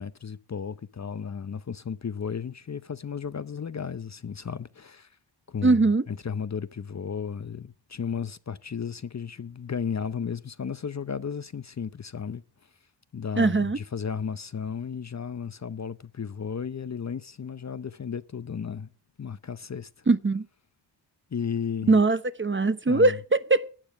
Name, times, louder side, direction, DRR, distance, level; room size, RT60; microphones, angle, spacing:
voice 1, 0.0-5.2 5.5-5.8 6.1-12.4 13.1-18.9 19.2-20.0 21.3-22.0 22.9-23.2, left 6 dB, 35° left, 0.7 m, -34 dB
voice 2, 5.6-6.0 13.4-13.8 20.1-20.5 21.9-23.7, right 3 dB, 25° right, 0.8 m, -21 dB
12.0 x 8.7 x 7.6 m
cardioid pair, 60°, 45 cm